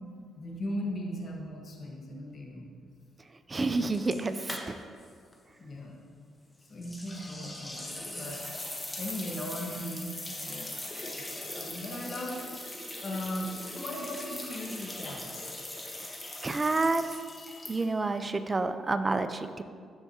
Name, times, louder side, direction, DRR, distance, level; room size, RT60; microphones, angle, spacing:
voice 1, 0.4-2.7 5.6-6.0 6.7-8.4 9.0-10.7 11.1-12.5 13.0-15.5, left 1 dB, 45° left, -1 dB, 1.3 m, -38 dB
voice 2, 3.5-4.7 16.4-17.0 17.7-19.6, right 3 dB, 25° right, 10 dB, 0.4 m, -29 dB
sound 1, 3.9-5.1 5.3-5.4 6.8-18.1, left 1 dB, 20° left, 1.1 m, -40 dB
12.0 x 4.6 x 2.8 m, 2.1 s
cardioid pair, 90°, 0 cm